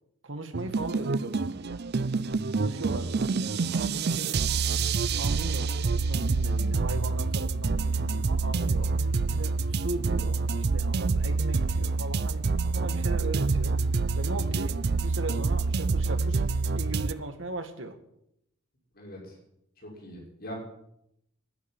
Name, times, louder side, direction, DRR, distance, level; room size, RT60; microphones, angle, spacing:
voice 1, 0.2-1.8 2.6-4.5 5.2-8.9 9.3-12.4 12.7-13.8 14.2-16.4 16.7-18.0, right 2 dB, 75° right, 8 dB, 2.1 m, -38 dB
sound 1, 0.5-17.1, right 4 dB, 55° right, 0.5 m, -27 dB
voice 2, 18.9-19.3 19.8-20.5, equal, 50° left, -1 dB, 6.2 m, -42 dB
11.5 x 11.0 x 9.9 m, 0.77 s
head